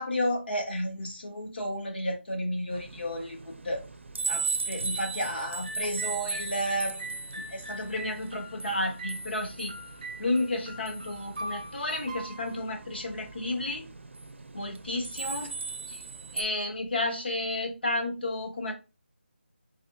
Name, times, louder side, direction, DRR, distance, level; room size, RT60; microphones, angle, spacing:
voice 1, 0.0-3.8 4.3-7.2 7.5-9.7 10.2-13.8 14.5-15.5 15.9-16.0 16.3-18.7, left 1 dB, 55° left, 1.1 m, -32 dB
sound 1, 2.7-16.4, right 4 dB, 85° right, 0.5 m, -38 dB
sound 2, 5.6-13.6, right 1 dB, 40° right, 0.4 m, -43 dB
3.4 x 3.1 x 2.4 m
figure-of-eight pair, 175°, 6 cm